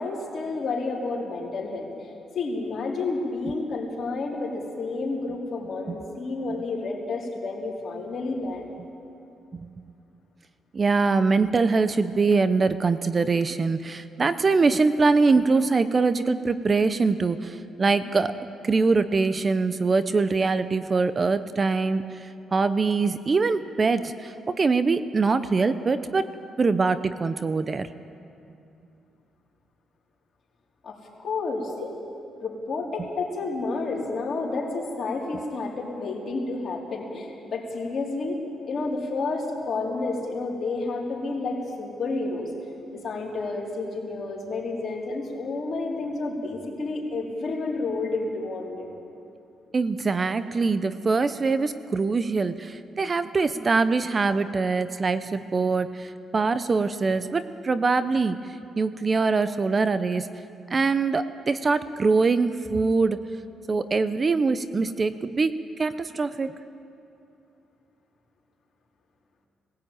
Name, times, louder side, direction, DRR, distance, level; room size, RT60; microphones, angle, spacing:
voice 1, 0.0-1.9 2.3-8.7 30.8-31.9 32.4-38.4 38.6-42.5 42.9-48.9, left 3 dB, 50° left, -2 dB, 4.2 m, -30 dB
voice 2, 10.7-18.3 18.6-26.3 26.6-27.9 49.7-58.4 58.8-60.3 60.7-63.2 63.7-66.5, right 4 dB, 35° right, 12 dB, 0.7 m, -23 dB
20.0 x 15.5 x 9.0 m, 2.7 s
cardioid pair, 90°, 0 cm